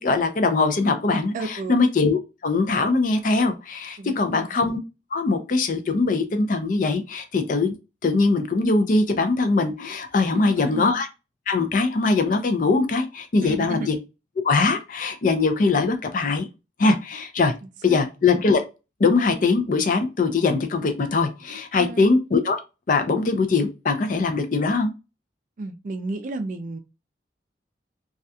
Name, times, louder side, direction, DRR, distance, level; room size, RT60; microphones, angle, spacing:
voice 1, 0.0-4.8 5.1-7.7 8.0-11.1 11.5-14.0 14.4-16.5 16.8-17.5 17.8-18.6 19.0-22.6 22.9-24.9, left 3 dB, 50° left, 0.4 m, -21 dB
voice 2, 1.3-1.8 4.0-4.5 10.3-10.9 13.4-13.9 17.9-18.0 21.8-22.1 25.6-26.8, right 2 dB, 45° right, 0.3 m, -32 dB
2.3 x 2.2 x 2.6 m
head